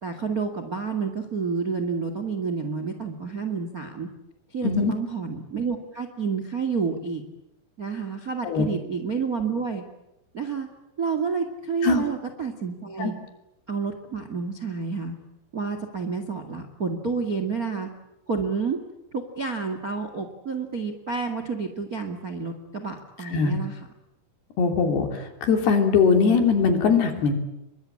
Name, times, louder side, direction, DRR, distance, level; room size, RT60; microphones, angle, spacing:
voice 1, 0.0-4.1 4.5-7.2 7.8-9.8 10.3-10.7 11.0-13.1 13.7-15.1 15.5-17.9 18.3-18.8 19.1-23.8, right 5 dB, 80° right, 7 dB, 0.8 m, -29 dB
voice 2, 24.6-27.3, left 5 dB, 55° left, 5 dB, 4.8 m, -21 dB
28.0 x 24.0 x 8.8 m, 0.88 s
omnidirectional pair, 5.9 m